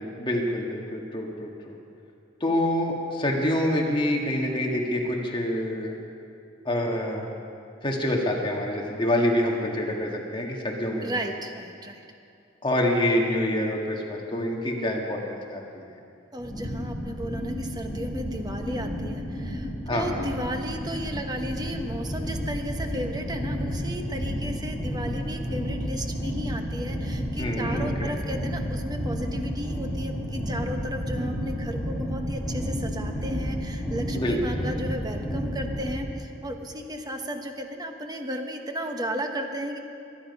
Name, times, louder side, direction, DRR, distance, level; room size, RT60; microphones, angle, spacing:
voice 1, 0.0-1.8 2.4-5.9 6.7-7.3 7.8-11.1 12.6-15.9 19.9-20.1 27.4-28.1 34.1-34.4, left 1 dB, 25° left, 0 dB, 1.8 m, -26 dB
voice 2, 11.0-12.0 16.3-39.8, equal, 20° right, 4 dB, 1.2 m, -34 dB
sound 1, 16.4-35.9, equal, 5° left, 3.8 m, -31 dB
23.0 x 10.5 x 5.5 m, 2.5 s
head